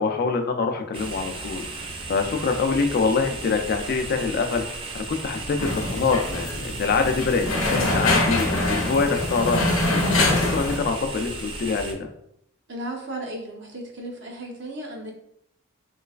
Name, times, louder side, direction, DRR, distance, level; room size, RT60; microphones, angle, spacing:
voice 1, 0.0-12.1, left 4 dB, 45° left, 5 dB, 0.3 m, -25 dB
sound 1, 0.9-11.9, right 3 dB, 25° right, 0.4 m, -35 dB
sound 2, 5.6-10.8, left 2 dB, 75° left, 0.7 m, -24 dB
voice 2, 12.7-15.1, right 1 dB, 55° right, 0 dB, 0.7 m, -35 dB
3.1 x 3.1 x 2.3 m, 0.74 s
head